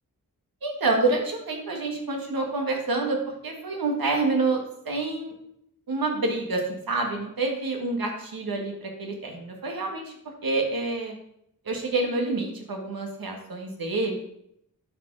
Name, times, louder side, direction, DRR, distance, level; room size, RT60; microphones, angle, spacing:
voice 1, 0.6-3.2 3.4-5.3 5.9-10.1 10.4-11.1 11.7-14.2, right 3 dB, 85° right, 2 dB, 2.1 m, -27 dB
11.0 x 5.3 x 4.9 m, 0.75 s
wide cardioid pair, 80°, 34 cm